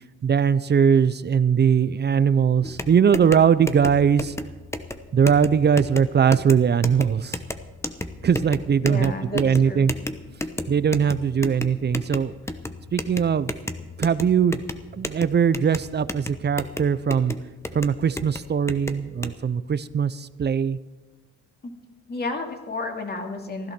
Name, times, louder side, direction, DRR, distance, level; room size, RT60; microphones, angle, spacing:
voice 1, 0.2-4.3 5.1-7.4 8.2-9.9 10.7-12.3 12.9-13.5 14.0-14.6 14.9-17.3 17.7-20.8, right 7 dB, 35° right, 16 dB, 0.6 m, -20 dB
sound 1, 2.6-19.3, left 1 dB, 10° left, 0.9 m, -34 dB
voice 2, 8.8-9.9 21.6-21.7 22.1-23.7, left 3 dB, 30° left, 3 dB, 2.5 m, -32 dB
16.0 x 11.5 x 6.0 m, 1.2 s
cardioid pair, 90°, 30 cm